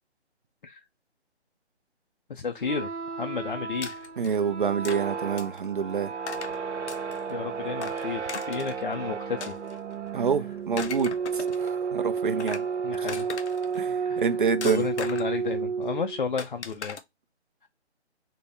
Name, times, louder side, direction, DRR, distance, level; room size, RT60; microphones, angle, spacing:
voice 1, 2.3-2.9 3.2-3.9 7.3-9.5 12.8-13.3 14.1-14.4 14.6-17.0, left 5 dB, 50° left, 0.4 m, -32 dB
sound 1, 2.6-16.3, right 6 dB, 85° right, 1.0 m, -32 dB
sound 2, 3.8-4.3 4.9-5.0 5.4-5.7 6.3-6.6 6.9-7.3 7.8-8.8 9.4-10.1 10.6-11.7 12.2-12.7 13.1-13.8 14.6-15.4 16.4-17.0, left 6 dB, 75° left, 0.7 m, -38 dB
voice 2, 4.2-6.1 10.1-12.6 13.7-14.9, right 6 dB, 50° right, 0.5 m, -27 dB
4.2 x 2.1 x 3.4 m
hypercardioid pair, 165°, 34 cm